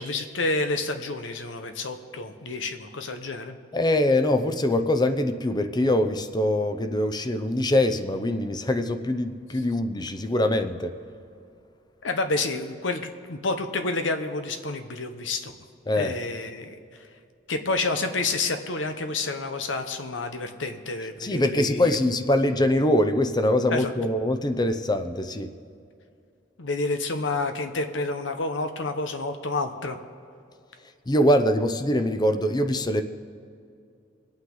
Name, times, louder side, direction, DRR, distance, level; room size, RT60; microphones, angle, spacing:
voice 1, 0.0-3.6 12.0-15.5 15.9-16.8 17.5-21.9 23.7-23.9 26.6-30.0, left 3 dB, 85° left, 7 dB, 1.0 m, -29 dB
voice 2, 3.7-10.9 15.9-16.2 21.2-25.5 31.1-33.0, left 1 dB, 20° left, 8 dB, 0.6 m, -23 dB
24.0 x 8.8 x 3.9 m, 2.4 s
head